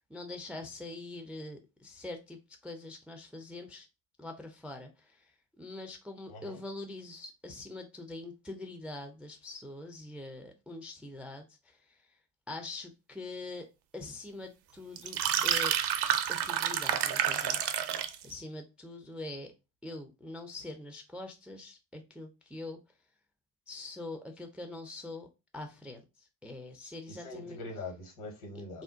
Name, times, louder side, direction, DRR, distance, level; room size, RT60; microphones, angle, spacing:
voice 1, 0.1-3.9 4.2-12.0 12.5-13.7 13.9-15.7 16.3-17.6 18.2-19.5 19.8-22.8 23.7-25.3 25.5-27.6, left 2 dB, 5° right, 0.3 m, -44 dB
voice 2, 6.3-6.6 27.1-28.8, left 2 dB, 70° left, 1.3 m, -43 dB
sound 1, 15.0-18.2, right 10 dB, 55° right, 0.6 m, -29 dB
2.5 x 2.1 x 3.7 m
hypercardioid pair, 60°, 49 cm